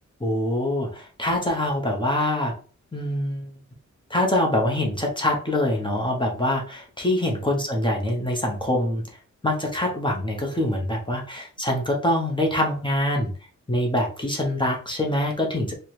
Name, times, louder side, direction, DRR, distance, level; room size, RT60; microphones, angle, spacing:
voice 1, 0.2-2.5 2.9-3.5 4.1-9.0 9.4-13.3 13.7-15.7, left 1 dB, 15° left, 0 dB, 0.8 m, -24 dB
4.3 x 2.1 x 3.1 m, 0.38 s
wide cardioid pair, 145°, 30 cm